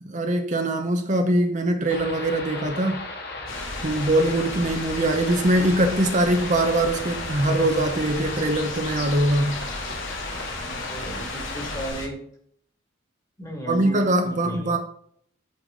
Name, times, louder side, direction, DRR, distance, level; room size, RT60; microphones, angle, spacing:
voice 1, 0.0-3.0 3.8-9.6 13.7-14.8, right 1 dB, 40° right, 0.9 m, -22 dB
sound 1, 1.9-11.9, left 2 dB, 55° left, 2.1 m, -35 dB
sound 2, 3.5-12.1, left 2 dB, 90° left, 2.1 m, -36 dB
voice 2, 10.5-12.2 13.4-14.8, right 1 dB, 20° left, 2.2 m, -35 dB
7.9 x 7.1 x 3.8 m
head